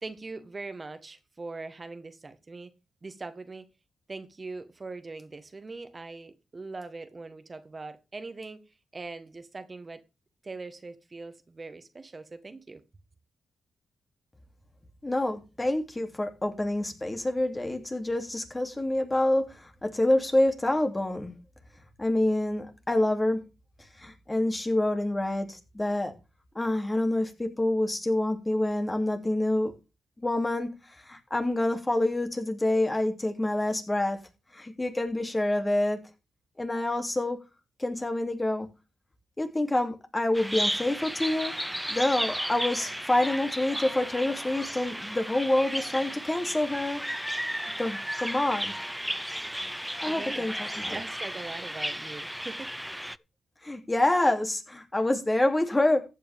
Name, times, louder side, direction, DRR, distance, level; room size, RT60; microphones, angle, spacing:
voice 1, 0.0-2.7 3.0-3.7 4.1-8.6 8.9-10.0 10.4-12.8 50.0-50.5 50.8-52.7, right 3 dB, 35° right, 1.5 m, -41 dB
voice 2, 15.0-21.3 22.0-23.4 24.0-26.1 26.5-29.7 30.2-34.2 34.5-36.0 36.6-37.4 37.8-38.7 39.4-41.5 41.9-47.0 47.8-48.7 50.0-51.0 53.6-56.0, left 1 dB, 20° left, 3.1 m, -27 dB
Bird vocalization bird call bird song, 40.3-53.2, equal, 5° right, 0.5 m, -34 dB
14.5 x 8.5 x 3.7 m
supercardioid pair, 50°, 0 cm